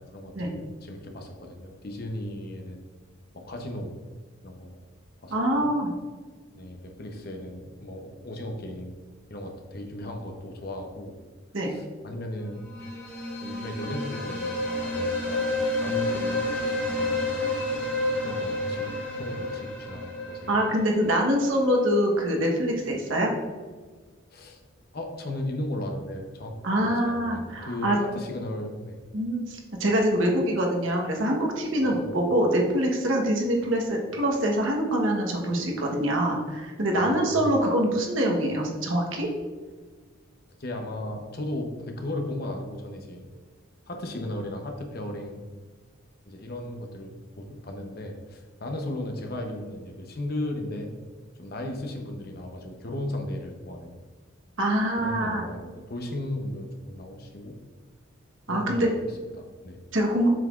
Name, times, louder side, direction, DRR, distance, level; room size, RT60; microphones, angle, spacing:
voice 1, 0.0-2.8 3.3-4.0 4.4-4.8 5.2-5.7 6.5-9.0 9.3-11.2 11.7-12.6 13.4-16.6 16.9-17.4 18.2-20.5 24.3-24.6 24.9-29.0 31.8-32.1 37.0-37.5 40.6-43.2 43.9-45.5 46.3-50.9 51.4-54.0 55.0-57.6 58.5-59.8, left 1 dB, 45° left, 3 dB, 0.8 m, -36 dB
voice 2, 5.3-5.9 11.5-11.7 20.5-23.3 26.6-28.0 29.1-39.3 54.6-55.4 58.5-58.9 59.9-60.3, right 1 dB, 65° right, 0 dB, 1.2 m, -24 dB
sound 1, 12.6-21.5, left 2 dB, 10° left, 1.4 m, -30 dB
7.5 x 5.8 x 2.5 m, 1.4 s
head